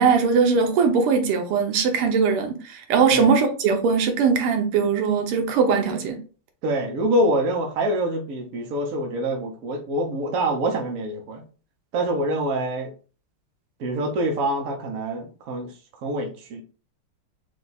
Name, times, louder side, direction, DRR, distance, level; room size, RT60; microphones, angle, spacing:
voice 1, 0.0-6.2, right 5 dB, 85° right, 1.8 m, -20 dB
voice 2, 6.6-11.4 11.9-12.9 13.8-15.7 16.0-16.6, right 1 dB, 60° right, 0.9 m, -25 dB
4.8 x 2.3 x 4.1 m
omnidirectional pair, 2.4 m